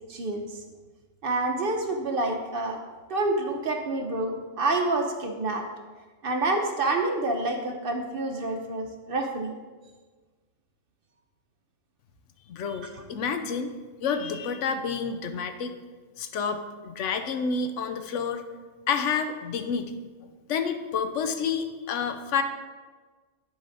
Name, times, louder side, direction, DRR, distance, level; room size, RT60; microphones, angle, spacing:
voice 1, 0.1-0.6 1.2-2.8 3.1-5.7 6.2-9.6 12.7-12.8, right 2 dB, 55° right, 4 dB, 0.8 m, -28 dB
voice 2, 12.5-13.7 14.0-15.7 16.2-18.4 18.9-20.0 20.5-22.4, left 6 dB, 75° left, 8 dB, 0.9 m, -29 dB
10.0 x 4.1 x 3.8 m, 1.4 s
omnidirectional pair, 1.3 m